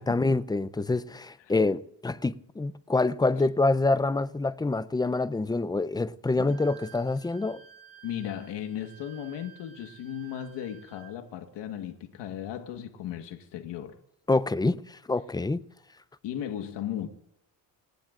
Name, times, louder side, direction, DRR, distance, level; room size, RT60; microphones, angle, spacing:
voice 1, 0.0-7.6 14.3-15.6, left 3 dB, 10° left, 0.6 m, -26 dB
Wind instrument woodwind instrument, 6.5-11.2, right 10 dB, 60° right, 5.4 m, -53 dB
voice 2, 8.0-14.0 16.2-17.1, left 10 dB, 75° left, 1.6 m, -36 dB
28.0 x 19.0 x 2.6 m
cardioid pair, 95°, 43 cm